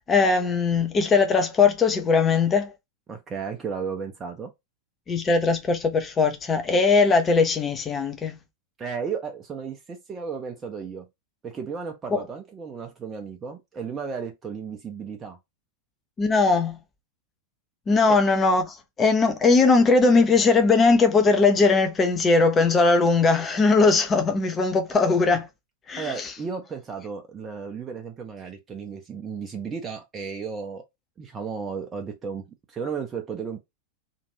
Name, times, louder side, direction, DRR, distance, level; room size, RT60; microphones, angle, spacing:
voice 1, 0.1-2.7 5.1-8.4 12.1-12.2 16.2-16.8 17.9-25.5 25.9-26.3, left 4 dB, 20° left, 0.6 m, -20 dB
voice 2, 3.1-4.5 8.8-11.1 11.4-15.4 18.1-18.2 26.0-30.8 31.2-33.6, right 6 dB, 20° right, 0.6 m, -34 dB
3.0 x 2.5 x 2.6 m
figure-of-eight pair, 90°, 0 cm